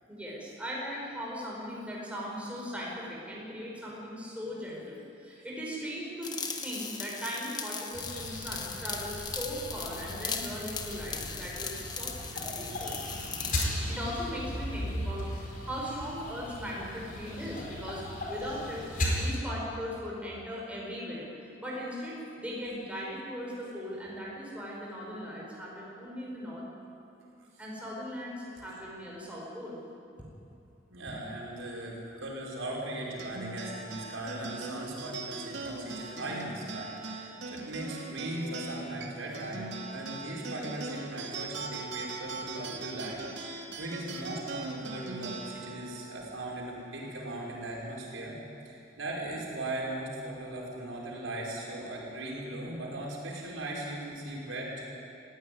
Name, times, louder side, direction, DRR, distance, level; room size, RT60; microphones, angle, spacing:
voice 1, 0.1-6.3 6.6-12.9 13.9-18.0 18.3-18.9 19.1-21.3 21.6-26.6 27.6-29.8, equal, 5° right, -4 dB, 4.8 m, -38 dB
sound 1, 6.2-13.7, left 5 dB, 20° left, 1.3 m, -38 dB
sound 2, 7.9-19.3, left 1 dB, 45° left, 4.5 m, -37 dB
voice 2, 30.9-48.4 48.7-55.0, right 1 dB, 80° right, -3 dB, 5.4 m, -38 dB
sound 3, 33.2-47.9, right 3 dB, 60° right, 2.4 m, -41 dB
20.0 x 16.0 x 9.5 m, 2.7 s
head